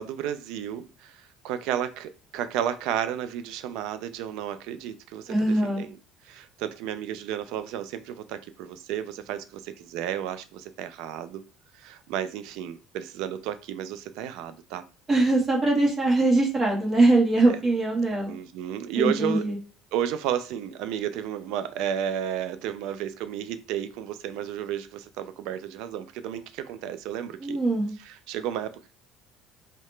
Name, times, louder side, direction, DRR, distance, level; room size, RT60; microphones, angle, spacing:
voice 1, 0.0-5.3 5.8-5.9 6.2-11.4 11.7-14.8 17.4-17.6 18.3-19.4 19.9-27.6 28.0-28.9, right 10 dB, 75° right, 0.3 m, -32 dB
voice 2, 5.3-5.8 15.1-18.3 18.9-19.6 27.4-27.9, right 2 dB, 30° right, 1.1 m, -22 dB
2.8 x 2.1 x 3.1 m
supercardioid pair, 105°, 0 cm